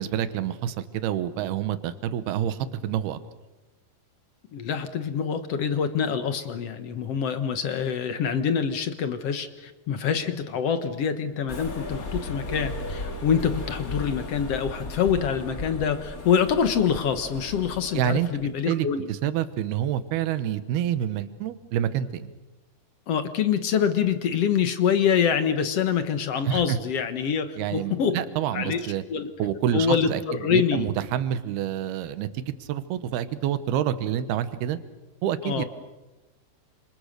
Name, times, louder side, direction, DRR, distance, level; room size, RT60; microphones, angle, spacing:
voice 1, 0.0-3.2 17.9-18.3 18.7-22.3 26.5-26.8 27.6-29.0 29.4-30.2 30.5-34.8 35.2-35.7, right 10 dB, 85° right, 12 dB, 3.1 m, -27 dB
voice 2, 4.5-19.1 23.1-28.2 28.5-29.3 29.7-30.9 35.4-35.6, left 7 dB, 60° left, 9 dB, 1.7 m, -25 dB
sound 1, 11.5-18.4, left 2 dB, 30° left, 1.9 m, -36 dB
29.0 x 26.5 x 6.7 m, 1.1 s
omnidirectional pair, 4.4 m